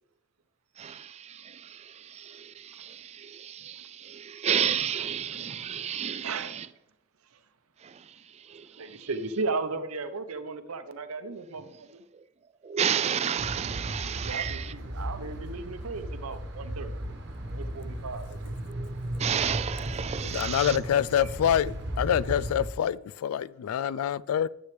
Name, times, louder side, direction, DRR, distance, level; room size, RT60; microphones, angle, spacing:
voice 1, 0.8-6.7 7.8-9.1 11.2-11.4 12.1-12.2 12.6-14.7 18.7-20.8, right 8 dB, 30° right, 0.3 m, -32 dB
voice 2, 6.2-6.6 8.8-12.0 14.1-16.9 17.5-18.6, right 3 dB, 90° right, 0.7 m, -35 dB
sound 1, 13.4-22.7, right 1 dB, 55° right, 1.2 m, -36 dB
voice 3, 20.2-24.5, left 9 dB, 80° left, 0.3 m, -26 dB
9.8 x 8.1 x 3.2 m
head